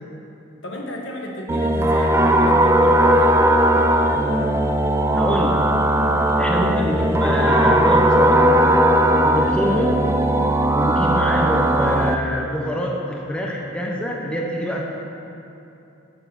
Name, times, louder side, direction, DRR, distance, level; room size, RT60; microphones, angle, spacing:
voice 1, 0.6-3.4, left 1 dB, 70° left, 0 dB, 1.3 m, -33 dB
sound 1, 1.5-12.1, right 1 dB, 10° right, 0.3 m, -17 dB
voice 2, 5.1-5.8 6.4-8.6 9.2-10.1 10.7-14.8, equal, 5° left, -1 dB, 0.7 m, -25 dB
8.5 x 7.4 x 6.2 m, 2.9 s
head